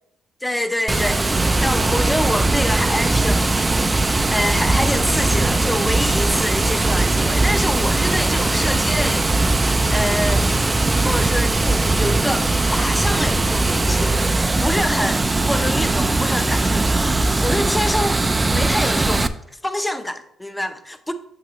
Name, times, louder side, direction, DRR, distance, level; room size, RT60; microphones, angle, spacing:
voice 1, 0.4-1.2 1.6-3.7 4.3-9.6 9.9-10.5 11.0-19.3 19.6-21.1, left 1 dB, 10° left, 0.8 m, -26 dB
Water, 0.9-19.3, right 2 dB, 20° right, 0.5 m, -19 dB
8.7 x 6.0 x 3.1 m
cardioid pair, 90°, 0 cm